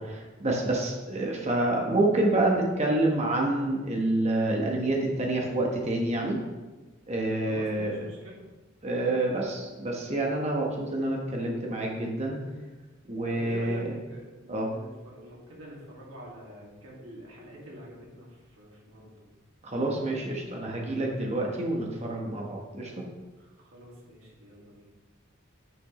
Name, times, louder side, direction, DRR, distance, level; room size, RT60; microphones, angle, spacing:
voice 1, 0.0-6.4 7.1-8.0 8.8-12.4 13.1-13.9 14.5-14.7 19.6-22.9, right 2 dB, 35° right, -1 dB, 1.2 m, -28 dB
voice 2, 7.5-8.5 13.3-19.1 23.4-24.8, equal, 80° right, -4 dB, 2.5 m, -46 dB
9.1 x 6.2 x 3.2 m, 1.2 s
head